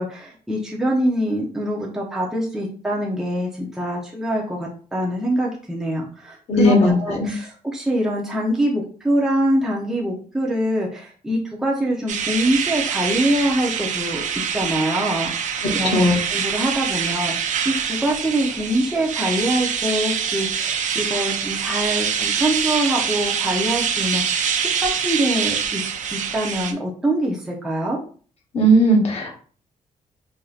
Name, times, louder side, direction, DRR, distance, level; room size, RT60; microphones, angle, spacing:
voice 1, 0.0-14.2 14.5-15.3 15.7-24.4 24.8-28.0, right 1 dB, 5° right, -3 dB, 0.6 m, -24 dB
voice 2, 6.5-6.9 7.2-7.3 15.8-16.1 28.5-29.4, right 1 dB, 45° left, 0 dB, 1.1 m, -16 dB
sound 1, 12.1-26.7, right 7 dB, 60° right, 0.5 m, -25 dB
4.7 x 2.6 x 2.4 m, 0.42 s
cardioid pair, 145°, 14 cm